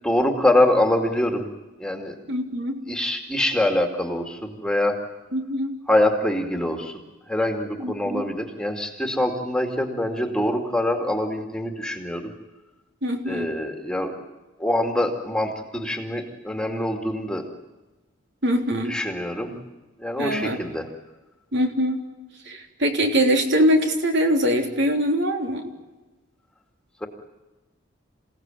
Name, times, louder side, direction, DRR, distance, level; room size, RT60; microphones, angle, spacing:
voice 1, 0.0-1.4 1.8-2.1 2.9-5.0 5.9-7.0 7.3-12.3 13.3-14.1 14.6-17.4 18.9-19.5 20.0-20.9 27.0-27.1, left 1 dB, 5° left, 4 dB, 2.5 m, -24 dB
voice 2, 2.3-2.8 5.3-5.8 7.8-8.2 13.0-13.5 18.4-19.0 19.5-19.6 20.2-20.6 21.5-22.0 22.4-25.7, equal, 60° right, 4 dB, 3.6 m, -23 dB
28.5 x 17.5 x 9.2 m, 1.1 s
head